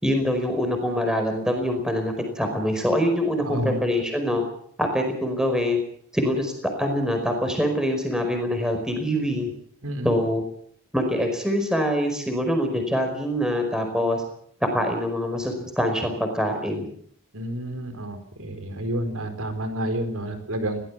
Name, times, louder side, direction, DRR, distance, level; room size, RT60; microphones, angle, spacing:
voice 1, 0.0-4.4 4.8-5.8 6.1-6.5 6.8-9.5 10.0-10.4 10.9-14.2 14.7-16.9, equal, 5° right, 4 dB, 4.9 m, -24 dB
voice 2, 3.4-3.8 9.8-10.2 17.3-20.8, right 1 dB, 75° right, 8 dB, 4.2 m, -29 dB
21.5 x 17.5 x 7.4 m, 0.63 s
head